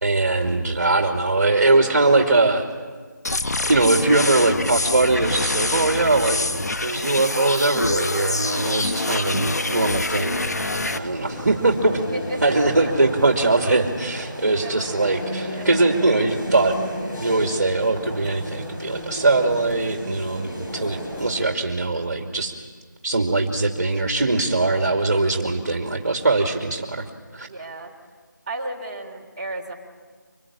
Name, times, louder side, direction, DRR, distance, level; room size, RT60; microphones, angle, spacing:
voice 1, 0.0-2.7 3.7-10.6 10.9-12.0 12.4-16.8 17.2-22.6 23.0-27.0 27.3-27.5, right 2 dB, 45° right, 3 dB, 2.5 m, -21 dB
sound 1, 3.2-11.0, left 2 dB, 55° left, 1.2 m, -25 dB
sound 2, 10.6-21.5, equal, 10° left, 3.1 m, -33 dB
voice 2, 11.9-12.4 14.5-15.0 15.6-15.7 27.4-27.9 28.5-29.7, right 1 dB, 20° right, -1 dB, 3.5 m, -34 dB
25.5 x 23.0 x 8.6 m, 1.5 s
figure-of-eight pair, 175°, 11 cm